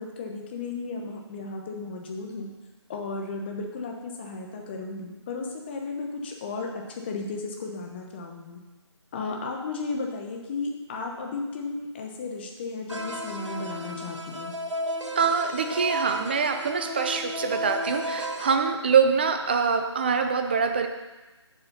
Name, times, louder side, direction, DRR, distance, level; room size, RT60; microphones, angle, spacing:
voice 1, 0.0-2.5 2.9-8.6 9.1-14.5, left 3 dB, 20° left, 1 dB, 1.0 m, -34 dB
sound 1, 12.9-18.5, equal, 90° right, 1.3 m, -33 dB
voice 2, 15.2-20.9, right 6 dB, 20° right, 6 dB, 0.5 m, -24 dB
7.1 x 6.6 x 5.4 m, 1.2 s
figure-of-eight pair, 155°, 15 cm